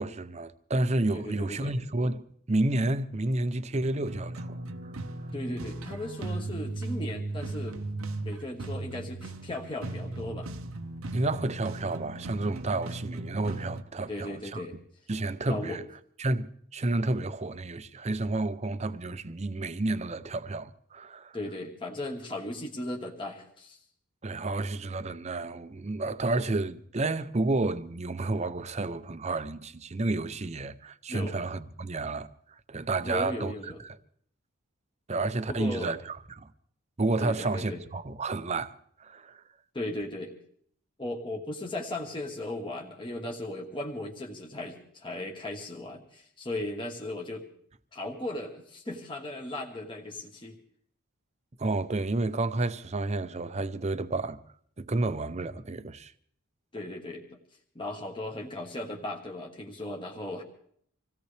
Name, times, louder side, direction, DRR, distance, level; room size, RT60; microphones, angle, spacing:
voice 1, 0.0-2.2 2.5-4.6 4.8-4.9 11.1-14.6 15.1-15.8 16.2-21.4 24.2-32.3 32.7-33.5 33.8-34.0 35.1-36.5 37.0-39.4 51.6-54.4 54.8-56.1, right 2 dB, 30° right, 0.6 m, -30 dB
voice 2, 1.1-1.7 5.3-7.8 8.2-10.5 14.1-14.7 15.5-15.8 21.3-23.8 31.1-31.3 33.0-33.8 35.5-36.0 37.2-37.8 39.7-40.3 41.0-47.5 47.9-50.6 56.7-57.4 57.7-60.4, left 1 dB, 25° left, 1.4 m, -37 dB
sound 1, 4.0-13.8, right 2 dB, 80° right, 0.9 m, -37 dB
25.5 x 16.5 x 3.4 m
head